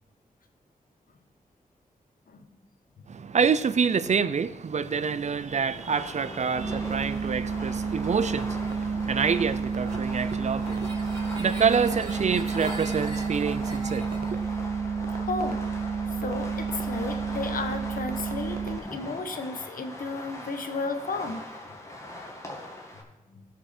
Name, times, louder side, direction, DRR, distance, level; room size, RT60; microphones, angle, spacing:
voice 1, 3.1-14.4, right 6 dB, 50° right, 0.5 m, -27 dB
sound 1, 4.8-14.7, right 1 dB, 35° right, 4.4 m, -44 dB
Fireworks, 5.7-23.0, left 1 dB, 20° left, 1.8 m, -41 dB
sound 2, 6.6-18.8, right 5 dB, 85° right, 0.7 m, -30 dB
voice 2, 15.3-15.6 16.2-21.4 23.3-23.4, left 3 dB, 75° left, 1.0 m, -33 dB
16.0 x 5.7 x 4.3 m
wide cardioid pair, 80°, 15 cm